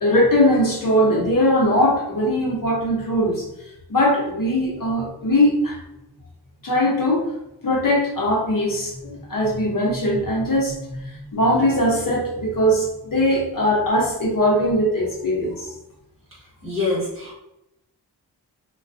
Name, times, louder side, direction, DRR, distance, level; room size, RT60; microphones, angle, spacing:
voice 1, 0.0-3.4 3.9-5.8 6.6-7.2 7.6-15.7, equal, 55° left, -3 dB, 0.8 m, -20 dB
voice 2, 16.6-17.4, left 3 dB, 30° right, -5 dB, 1.1 m, -25 dB
2.4 x 2.2 x 2.4 m, 0.89 s
wide cardioid pair, 90°, 40 cm